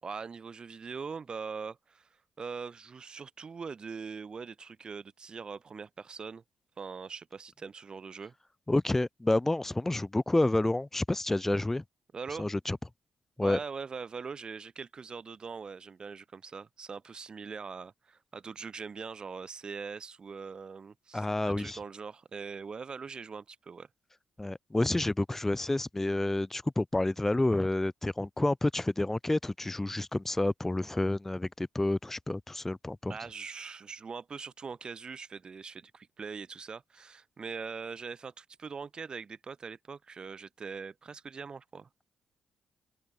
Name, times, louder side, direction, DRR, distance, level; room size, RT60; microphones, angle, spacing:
voice 1, 0.0-6.4 6.8-8.3 12.1-12.5 13.4-23.9 33.1-41.9, right 5 dB, 45° right, 1.4 m, -42 dB
voice 2, 8.7-11.8 12.4-12.8 13.4-13.6 21.1-21.8 24.4-33.2, left 2 dB, 15° left, 0.4 m, -29 dB
open air
supercardioid pair, 50°, 2 cm